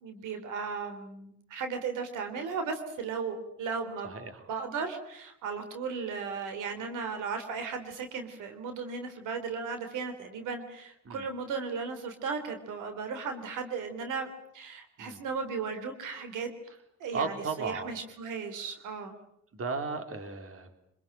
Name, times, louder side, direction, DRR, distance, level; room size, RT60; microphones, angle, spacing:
voice 1, 0.0-4.1 4.5-16.5 17.0-19.2, right 5 dB, 90° right, 7 dB, 3.5 m, -36 dB
voice 2, 4.0-4.4 11.1-11.3 15.0-15.2 17.1-17.9 19.5-20.8, right 4 dB, 50° right, 7 dB, 3.7 m, -35 dB
26.5 x 21.5 x 8.9 m, 0.75 s
cardioid pair, 90°, 30 cm